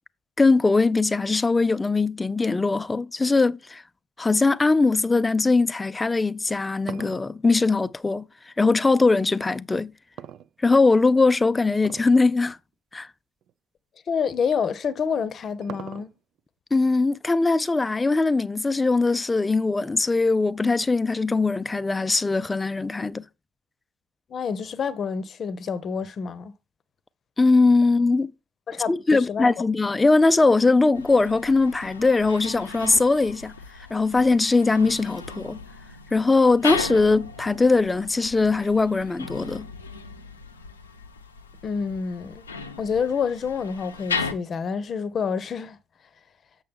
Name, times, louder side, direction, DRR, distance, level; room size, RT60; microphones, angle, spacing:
voice 1, 0.4-3.8 4.2-8.3 8.6-9.9 10.6-12.6 12.9-13.1 16.7-23.2 27.4-28.3 28.9-33.5 33.9-35.6 36.1-39.7, left 3 dB, 15° left, 0.4 m, -21 dB
sound 1, 6.3-8.8 10.2-11.0 11.8-12.2 12.5-12.6 13.4-13.5 14.9-16.4, right 10 dB, 50° right, 0.4 m, -41 dB
voice 2, 14.1-16.1 24.3-26.5 28.7-29.5 41.6-42.4 42.8-45.8, left 6 dB, 40° left, 0.7 m, -28 dB
sound 2, 30.9-44.3, left 4 dB, 80° left, 0.5 m, -36 dB
7.7 x 6.2 x 3.5 m
figure-of-eight pair, 55°, 0 cm